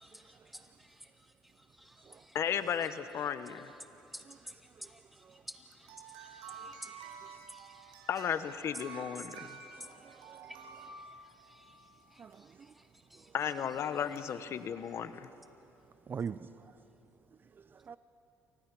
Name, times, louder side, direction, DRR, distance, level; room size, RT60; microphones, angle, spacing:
voice 1, 0.0-2.4 2.8-2.9 3.5-8.1 8.8-13.4 13.9-14.2, equal, ahead, 2.1 m, -54 dB
voice 2, 2.3-3.7 8.1-9.5 13.3-15.3, left 8 dB, 50° left, 1.0 m, -34 dB
sound 1, 5.8-11.8 14.2-14.3 15.2-15.3, right 5 dB, 85° right, 4.5 m, -50 dB
voice 3, 6.5-6.8 9.3-10.5 12.2-12.7 13.1-13.3 16.1-16.7 17.6-18.0, right 6 dB, 35° right, 0.6 m, -45 dB
29.5 x 24.5 x 6.0 m
cardioid pair, 95°, 6 cm